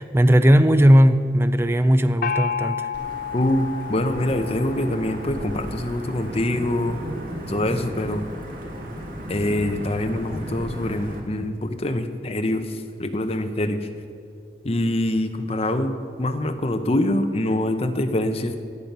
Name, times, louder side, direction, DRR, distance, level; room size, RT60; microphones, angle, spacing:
voice 1, 0.0-2.9, equal, 15° right, 11 dB, 0.4 m, -17 dB
Gong, 2.2-5.7, left 7 dB, 50° left, 0.4 m, -31 dB
Wind / Thunder / Rain, 2.9-11.2, equal, 50° right, 1.7 m, -35 dB
voice 2, 3.3-7.0 7.5-8.3 9.3-13.8 14.6-18.5, left 1 dB, 35° left, 6 dB, 0.8 m, -24 dB
20.5 x 7.6 x 5.5 m, 2.4 s
head